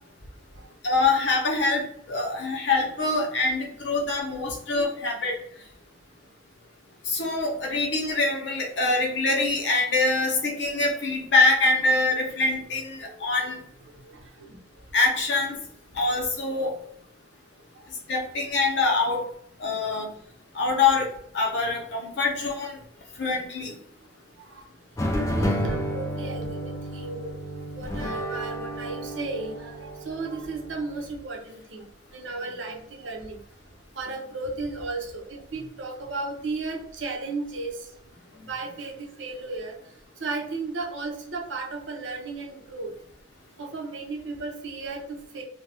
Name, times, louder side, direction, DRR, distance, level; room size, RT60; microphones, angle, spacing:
voice 1, 0.8-5.3 7.1-13.6 14.9-15.6 15.9-16.7 18.1-19.2 19.6-20.1 20.5-21.1 21.3-22.8 23.2-23.7, left 3 dB, 70° left, 1 dB, 0.7 m, -24 dB
voice 2, 14.1-14.6 24.4-24.7 25.3-27.3 27.7-31.8 32.1-33.4 33.9-37.9 38.3-39.8 40.2-42.9 43.6-45.4, right 3 dB, 80° right, 0 dB, 0.7 m, -34 dB
sound 1, 25.0-31.1, equal, 15° left, 0.5 m, -31 dB
2.5 x 2.2 x 3.4 m, 0.68 s
head